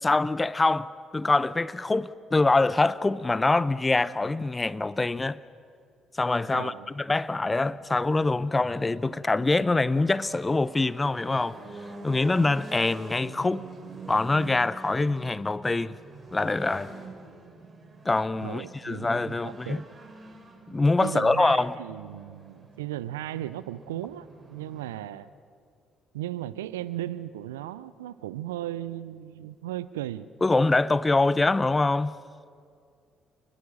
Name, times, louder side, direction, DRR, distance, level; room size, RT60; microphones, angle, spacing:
voice 1, 0.0-5.4 6.1-11.6 12.0-13.7 14.1-16.0 16.3-16.9 18.0-19.8 20.7-21.8 30.4-32.1, left 3 dB, 25° left, 0.8 m, -24 dB
voice 2, 6.5-6.9 18.4-19.8 21.0-25.3 26.1-30.3, right 13 dB, 80° right, 0.6 m, -36 dB
sound 1, 7.5-25.0, right 3 dB, 35° right, 5.2 m, -47 dB
28.5 x 21.0 x 6.4 m
hypercardioid pair, 45°, 0 cm